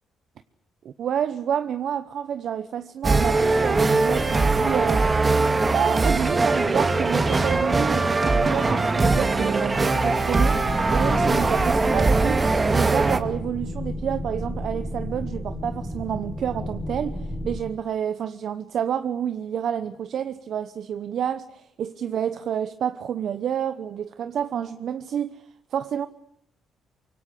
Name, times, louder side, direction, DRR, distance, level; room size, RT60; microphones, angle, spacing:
voice 1, 0.8-5.0 5.7-12.4 12.7-25.4 25.7-26.1, right 9 dB, 65° right, 0.9 m, -29 dB
sound 1, 3.0-13.2, right 3 dB, 25° right, 2.3 m, -21 dB
sound 2, 10.5-17.6, left 1 dB, 10° right, 4.0 m, -32 dB
25.0 x 23.5 x 8.4 m
cardioid pair, 90°, 0 cm